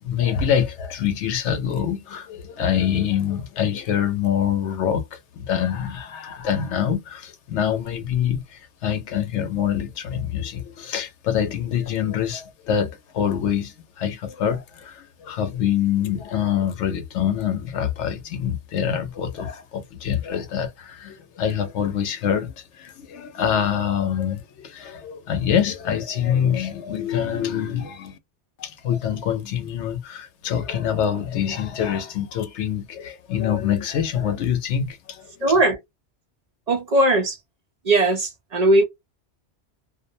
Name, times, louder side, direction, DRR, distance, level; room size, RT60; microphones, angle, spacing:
voice 1, 0.0-28.2 28.6-35.3, left 9 dB, 80° left, 0.9 m, -25 dB
voice 2, 35.4-35.8 36.7-37.4 37.8-38.8, right 2 dB, 50° right, 0.5 m, -19 dB
2.5 x 2.0 x 2.5 m
omnidirectional pair, 1.2 m